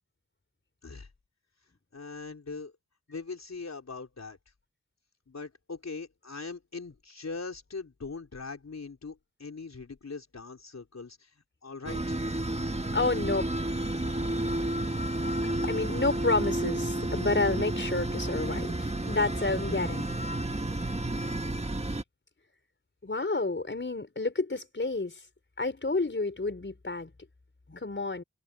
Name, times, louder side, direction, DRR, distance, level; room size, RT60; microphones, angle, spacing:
voice 1, 1.9-2.7 3.1-4.4 5.3-11.3 11.6-12.2, left 4 dB, 55° left, 4.2 m, -41 dB
sound 1, 11.9-22.0, right 1 dB, 20° right, 1.7 m, -31 dB
voice 2, 12.9-13.6 14.6-14.7 15.2-15.3 15.6-20.1 23.0-25.1 25.6-27.1 27.7-28.2, left 3 dB, 40° left, 5.0 m, -30 dB
cardioid pair, 50°, 31 cm